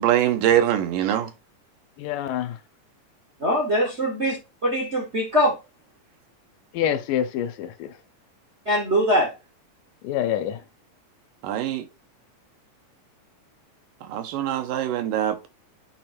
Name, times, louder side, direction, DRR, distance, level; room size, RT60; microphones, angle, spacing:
voice 1, 0.0-1.3 11.4-11.9 14.0-15.4, right 11 dB, 90° right, 2.6 m, -23 dB
voice 2, 2.0-2.6 6.7-7.9 10.0-10.6, left 10 dB, 80° left, 2.3 m, -26 dB
voice 3, 3.4-4.4 4.6-5.6 8.6-9.3, equal, 65° right, 0.6 m, -22 dB
8.7 x 3.2 x 4.3 m
omnidirectional pair, 3.8 m